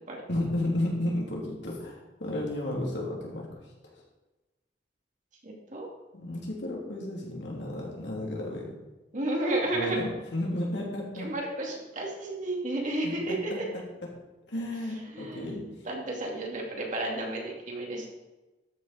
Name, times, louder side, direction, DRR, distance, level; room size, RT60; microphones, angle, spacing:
voice 1, 0.3-4.0 6.1-8.7 9.7-11.3 13.0-13.6 14.5-15.8, left 1 dB, 70° left, -3 dB, 3.2 m, -33 dB
voice 2, 5.4-5.9 9.1-10.0 11.2-13.7 15.1-15.4 15.8-18.1, right 1 dB, 45° right, -1 dB, 2.5 m, -32 dB
13.0 x 6.8 x 5.1 m, 1.1 s
head